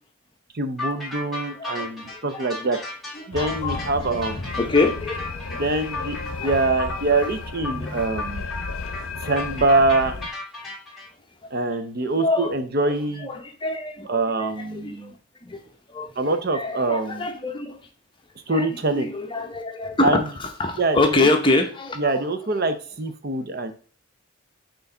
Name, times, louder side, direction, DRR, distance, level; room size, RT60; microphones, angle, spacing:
voice 1, 0.5-2.8 3.3-4.5 5.6-8.4 9.2-10.1 11.5-13.3 14.1-15.1 16.2-17.3 18.5-19.1 20.0-20.2 20.8-21.3 22.0-23.7, right 2 dB, 45° right, 9 dB, 0.6 m, -24 dB
sound 1, 0.8-11.1, left 2 dB, ahead, 1.7 m, -34 dB
voice 2, 1.6-2.5 3.3-3.8 4.6-6.1 6.4-6.5 7.6-8.0 9.3-9.4 12.2-12.5 12.9-13.0 13.2-15.2 15.4-15.6 15.9-16.1 16.5-17.8 18.5-18.7 18.9-22.2, left 2 dB, 20° left, 4 dB, 0.8 m, -26 dB
sound 2, 3.3-10.3, left 4 dB, 70° left, 0.7 m, -34 dB
4.7 x 3.9 x 5.4 m, 0.42 s
head